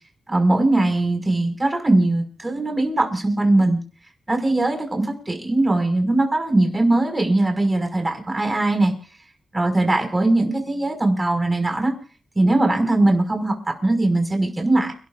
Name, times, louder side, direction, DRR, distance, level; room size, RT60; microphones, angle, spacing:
voice 1, 0.3-3.8 4.3-8.9 9.5-11.9 12.4-14.9, right 2 dB, 25° right, 4 dB, 5.6 m, -20 dB
30.0 x 13.0 x 2.6 m, 0.39 s
cardioid pair, 75°, 0 cm